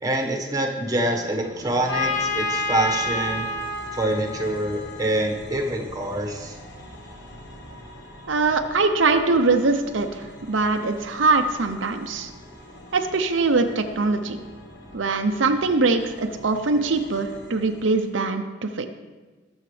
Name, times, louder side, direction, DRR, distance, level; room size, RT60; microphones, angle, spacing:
voice 1, 0.0-3.5 3.9-6.5, right 1 dB, 20° right, 1 dB, 1.3 m, -25 dB
sound 1, 0.8-18.2, left 1 dB, 60° left, 1.4 m, -44 dB
Trumpet, 1.9-5.6, left 2 dB, 80° left, 1.4 m, -29 dB
voice 2, 8.3-12.3 12.9-14.4 14.9-18.9, right 3 dB, 75° right, 5 dB, 0.7 m, -22 dB
20.0 x 7.2 x 3.3 m, 1.3 s
head